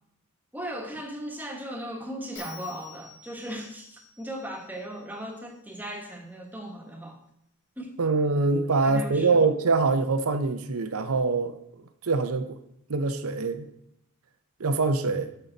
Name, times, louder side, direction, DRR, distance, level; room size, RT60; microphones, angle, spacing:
voice 1, 0.5-7.2 7.8-8.0 8.7-9.4, equal, 10° right, 2 dB, 1.3 m, -37 dB
Bell, 2.4-5.6, left 3 dB, 60° left, 4.1 m, -49 dB
voice 2, 8.0-11.6 12.0-12.6 12.9-13.6 14.6-15.3, right 3 dB, 80° right, 9 dB, 0.7 m, -24 dB
12.5 x 5.6 x 4.0 m, 0.75 s
head